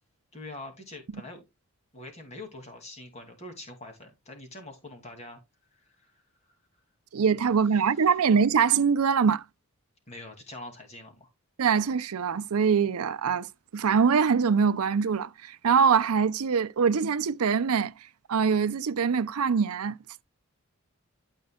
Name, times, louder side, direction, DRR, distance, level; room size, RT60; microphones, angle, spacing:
voice 1, 0.3-1.4 1.9-5.4 5.7-6.5 7.6-8.2 10.1-11.3, left 2 dB, 30° left, 2.4 m, -45 dB
voice 2, 7.1-9.4 11.6-13.5 13.7-17.9 18.3-20.0, right 6 dB, 85° right, 0.5 m, -23 dB
12.0 x 5.4 x 2.3 m
head